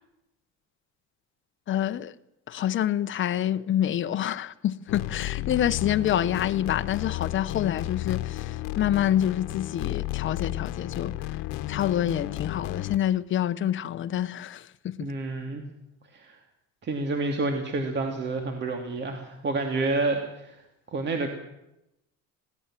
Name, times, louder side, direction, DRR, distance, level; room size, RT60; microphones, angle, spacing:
voice 1, 1.7-2.1 2.5-8.4 8.8-11.1 11.7-14.9, left 11 dB, 40° left, 1.0 m, -27 dB
sound 1, 4.9-13.0, left 16 dB, 90° left, 1.2 m, -33 dB
voice 2, 15.0-15.6 16.1-16.4 16.8-20.6 20.9-21.3, right 3 dB, 35° right, 2.6 m, -29 dB
21.5 x 17.5 x 7.6 m
cardioid pair, 135°, 31 cm